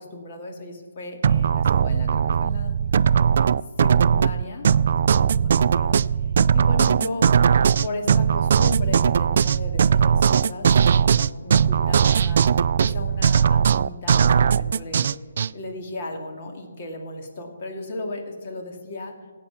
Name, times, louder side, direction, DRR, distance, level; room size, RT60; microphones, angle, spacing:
voice 1, 0.0-2.8 3.8-4.7 5.0-6.0 6.5-7.3 7.8-12.4 12.8-15.1 15.5-19.1, left 2 dB, 40° left, 2 dB, 2.5 m, -35 dB
sound 1, 1.2-15.5, right 7 dB, 55° right, 0.3 m, -19 dB
16.5 x 8.4 x 5.9 m, 1.5 s
hypercardioid pair, 150°, 0 cm